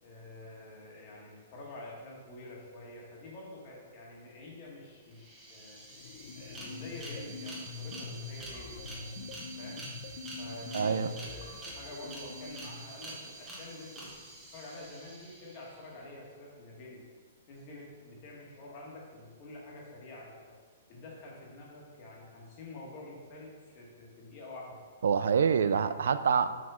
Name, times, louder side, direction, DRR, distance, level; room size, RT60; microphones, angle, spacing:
voice 1, 0.0-5.8 6.3-8.8 9.6-9.9 10.4-14.1 14.5-17.0 17.5-20.3 20.9-24.8 25.6-25.8, left 2 dB, 25° left, -3 dB, 1.5 m, -47 dB
sound 1, 5.1-15.9, right 2 dB, 10° right, 1.1 m, -47 dB
sound 2, 5.8-13.0, left 5 dB, 45° left, 0.5 m, -44 dB
voice 2, 10.7-11.1 25.0-26.5, right 6 dB, 70° right, 13 dB, 0.3 m, -26 dB
5.9 x 4.9 x 5.5 m, 1.5 s
hypercardioid pair, 175°, 0 cm